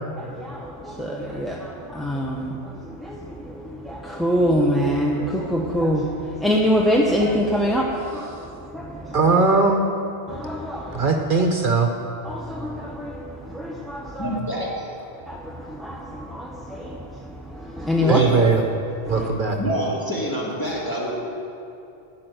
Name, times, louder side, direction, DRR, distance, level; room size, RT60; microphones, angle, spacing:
voice 1, 0.2-9.2 10.3-11.1 12.2-14.4 15.3-18.2 19.0-19.3, equal, ahead, -2 dB, 0.6 m, -25 dB
voice 2, 9.1-9.8 10.9-11.9 18.1-18.6 19.1-19.6, right 4 dB, 55° right, 3 dB, 0.9 m, -19 dB
voice 3, 14.2-14.9 18.0-18.5 19.6-21.1, equal, 20° left, -5 dB, 2.5 m, -26 dB
12.5 x 5.9 x 9.1 m, 2.7 s
omnidirectional pair, 1.1 m